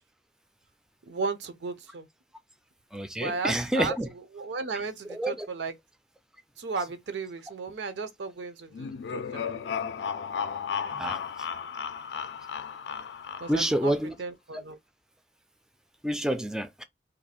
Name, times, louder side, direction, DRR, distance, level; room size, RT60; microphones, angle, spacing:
voice 1, 1.1-2.1 3.2-3.9 4.3-5.7 6.6-9.6 13.4-13.9 14.2-14.8, right 4 dB, 85° right, 0.6 m, -35 dB
voice 2, 2.9-4.1 5.1-5.5 10.9-11.2 13.5-14.1 16.0-16.8, right 1 dB, 5° right, 0.3 m, -28 dB
sound 1, 8.7-13.8, left 6 dB, 80° left, 0.4 m, -34 dB
2.6 x 2.4 x 4.1 m
head